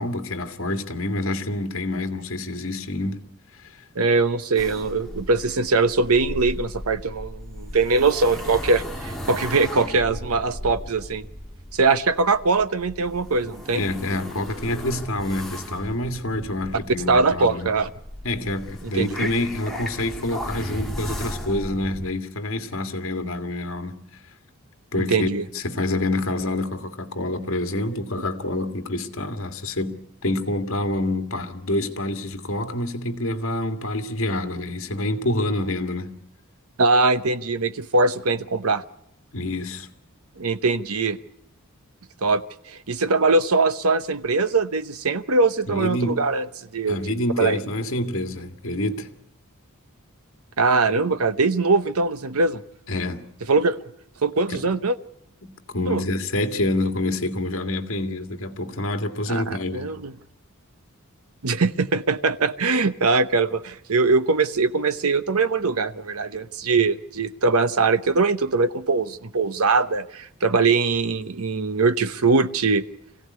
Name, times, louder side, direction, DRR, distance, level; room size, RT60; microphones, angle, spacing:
voice 1, 0.0-3.2 13.7-17.7 18.2-24.0 24.9-36.2 39.3-39.9 45.7-46.3 46.9-49.1 52.9-53.2 54.5-54.7 55.4-59.9, left 1 dB, 65° left, 2.0 m, -27 dB
voice 2, 4.0-11.3 11.7-13.8 17.1-17.9 18.9-19.1 25.0-25.4 36.8-38.8 40.4-41.2 42.2-42.4 42.7-46.5 46.7-47.1 47.4-47.6 50.6-52.6 53.5-53.8 54.2-55.0 55.9-56.0 59.3-60.1 61.4-72.8, right 3 dB, 80° right, 0.9 m, -22 dB
sound 1, 4.6-22.1, equal, ahead, 2.6 m, -36 dB
25.5 x 16.5 x 9.5 m
head